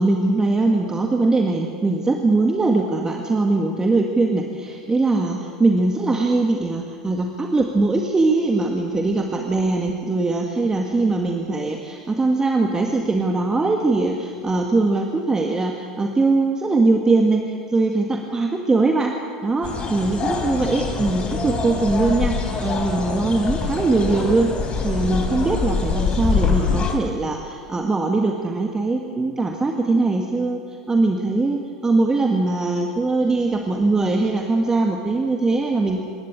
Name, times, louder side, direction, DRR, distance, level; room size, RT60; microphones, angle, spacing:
voice 1, 0.0-19.1 19.4-24.5 24.8-30.6 30.9-36.0, right 3 dB, 15° right, 2 dB, 1.9 m, -21 dB
sound 1, 19.6-26.9, left 4 dB, 30° left, 4.1 m, -24 dB
26.0 x 12.5 x 8.9 m, 2.2 s
hypercardioid pair, 85°, 4 cm